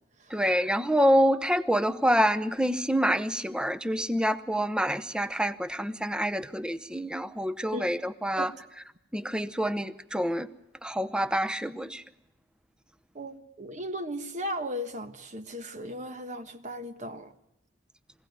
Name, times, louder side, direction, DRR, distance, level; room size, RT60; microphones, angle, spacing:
voice 1, 0.3-8.5 9.1-10.5 10.8-12.0, equal, 5° right, 0.8 m, -27 dB
voice 2, 13.1-17.3, equal, 40° right, 1.3 m, -36 dB
23.5 x 17.0 x 9.4 m
head